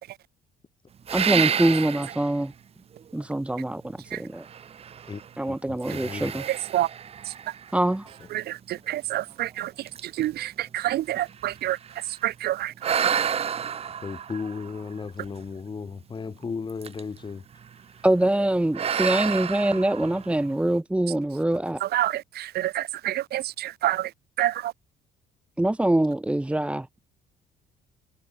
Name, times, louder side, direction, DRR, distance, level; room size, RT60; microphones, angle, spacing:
voice 1, 1.1-2.5 3.1-4.4 5.4-6.4 7.7-8.1 18.0-21.8 25.6-26.9, right 1 dB, 5° right, 1.2 m, -24 dB
sound 1, 1.1-2.4 3.0-3.1 4.4-5.3 5.8-8.2 8.9-9.0 9.5-9.6 9.9-12.2 12.8-15.5 16.7-17.2 17.5-17.8 18.7-20.6, right 8 dB, 35° right, 0.8 m, -30 dB
voice 2, 5.5-6.4 14.0-17.4 19.2-19.3, left 5 dB, 25° left, 2.9 m, -35 dB
voice 3, 6.4-6.9 7.2-7.5 8.3-13.1 21.8-24.7, right 14 dB, 70° right, 3.0 m, -28 dB
cardioid pair, 110°, 17 cm